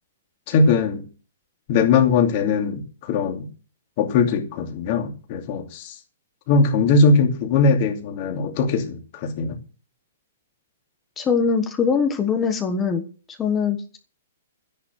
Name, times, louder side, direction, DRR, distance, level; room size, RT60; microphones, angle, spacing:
voice 1, 0.5-1.0 1.7-3.5 4.0-5.9 6.5-9.6, left 4 dB, 30° left, 3 dB, 2.7 m, -20 dB
voice 2, 11.2-13.0 13.4-14.0, left 6 dB, 10° left, 6 dB, 1.3 m, -22 dB
13.0 x 10.5 x 6.4 m, 0.38 s
hypercardioid pair, 175°, 0 cm